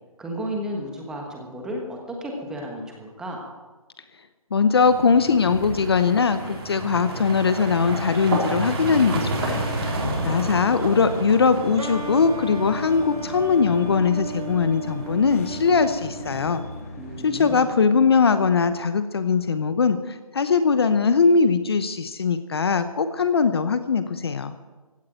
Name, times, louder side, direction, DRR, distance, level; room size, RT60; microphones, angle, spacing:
voice 1, 0.2-3.4 10.2-10.8 17.0-17.7, equal, 5° right, 1 dB, 1.3 m, -33 dB
voice 2, 4.5-9.7 10.2-16.6 17.2-24.5, left 5 dB, 45° left, 11 dB, 0.9 m, -21 dB
sound 1, 4.8-16.6, right 2 dB, 40° right, 3.9 m, -31 dB
sound 2, 7.9-17.6, left 4 dB, 25° left, 1.6 m, -42 dB
sound 3, 11.8-17.2, right 3 dB, 90° right, 3.2 m, -36 dB
16.0 x 9.4 x 9.1 m, 1.3 s
hypercardioid pair, 165°, 19 cm